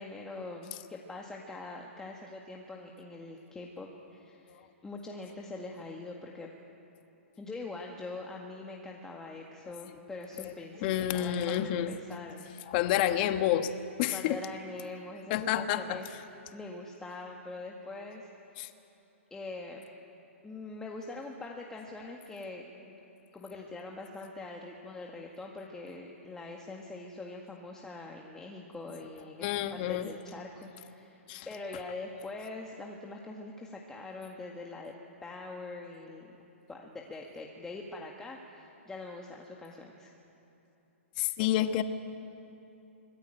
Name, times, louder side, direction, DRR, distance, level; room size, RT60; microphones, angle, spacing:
voice 1, 0.0-6.5 7.4-12.7 13.0-13.1 14.1-18.3 18.6-18.7 19.3-19.8 20.4-22.9 23.3-34.9 35.2-36.3 36.7-40.1, left 3 dB, 10° left, -1 dB, 1.9 m, -43 dB
voice 2, 10.8-12.0 12.7-13.7 14.0-14.4 15.3-16.0 18.6-18.7 29.4-30.1 31.3-31.5 41.2-41.8, left 12 dB, 40° left, 9 dB, 1.4 m, -29 dB
25.5 x 19.5 x 9.1 m, 3.0 s
hypercardioid pair, 140°, 7 cm